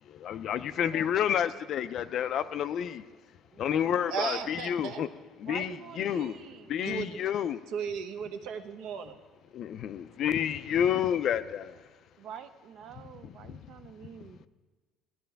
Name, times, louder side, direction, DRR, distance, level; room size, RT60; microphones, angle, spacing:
voice 1, 0.1-3.1 3.6-5.1 5.4-6.4 6.7-7.6 9.5-11.8 13.2-13.6 14.0-14.1, left 9 dB, 45° left, 13 dB, 0.4 m, -30 dB
voice 2, 3.5-4.1 5.4-6.8 12.2-14.4, right 8 dB, 50° right, 11 dB, 0.5 m, -47 dB
voice 3, 4.1-5.0 6.1-6.3 6.8-7.2 7.7-9.2, right 7 dB, 70° right, 6 dB, 1.0 m, -36 dB
17.5 x 11.5 x 3.4 m, 1.4 s
cardioid pair, 170°, 0 cm